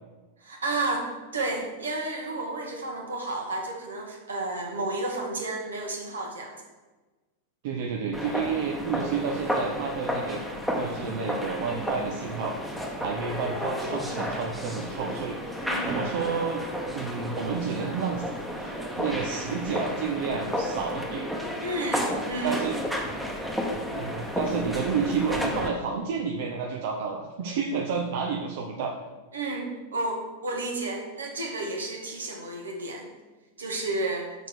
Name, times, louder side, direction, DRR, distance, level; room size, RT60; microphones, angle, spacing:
voice 1, 0.4-6.6 15.6-16.3 21.6-22.6 29.3-33.1 33.6-34.3, right 2 dB, 70° right, 1 dB, 1.5 m, -31 dB
voice 2, 7.6-10.4 10.8-15.5 15.9-16.6 16.9-18.2 18.6-21.3 22.4-22.8 23.9-28.9, right 5 dB, 50° right, 1 dB, 0.7 m, -30 dB
sound 1, 8.1-25.7, equal, ahead, 1.1 m, -32 dB
6.3 x 4.5 x 6.6 m, 1.2 s
figure-of-eight pair, 90°, 0 cm